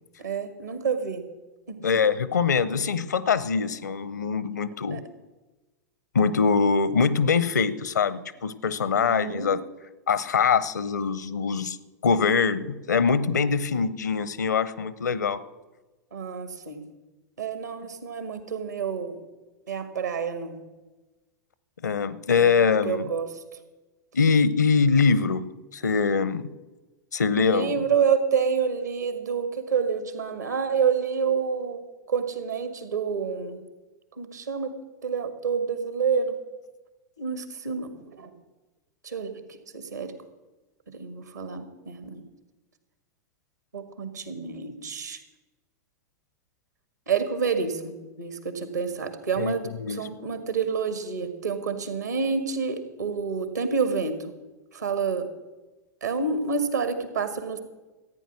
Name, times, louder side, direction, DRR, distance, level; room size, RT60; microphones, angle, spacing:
voice 1, 0.2-1.2 1.7-1.8 4.9-5.0 8.9-9.5 16.1-16.8 17.4-19.2 19.7-20.6 22.4-23.3 27.4-31.8 32.1-33.6 34.2-34.7 35.0-36.3 37.2-38.3 39.0-39.4 39.7-40.1 40.9-42.2 43.7-45.2 47.1-49.6 49.9-54.2 54.7-55.3 56.0-57.6, right 6 dB, 75° right, 9 dB, 1.6 m, -28 dB
voice 2, 1.8-5.0 6.1-9.6 10.1-11.8 12.0-15.4 21.8-23.1 24.1-26.5 27.1-27.8 49.4-50.0, left 5 dB, 70° left, 17 dB, 0.7 m, -23 dB
14.5 x 9.2 x 6.2 m, 1.2 s
figure-of-eight pair, 90°, 10 cm